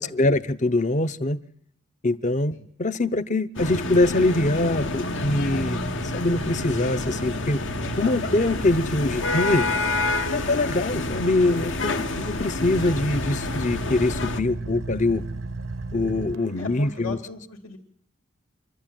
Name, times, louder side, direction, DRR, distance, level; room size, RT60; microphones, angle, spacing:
voice 1, 0.0-1.4 2.0-7.6 8.0-9.7 10.3-15.2 15.9-17.2, left 2 dB, 40° left, 13 dB, 0.8 m, -24 dB
sound 1, 3.6-14.4, left 2 dB, 65° left, 1.2 m, -29 dB
Car / Idling, 4.6-17.0, right 2 dB, 80° right, 0.9 m, -36 dB
voice 2, 16.6-17.8, left 4 dB, 85° left, 2 dB, 2.4 m, -37 dB
26.0 x 12.5 x 9.1 m, 0.68 s
head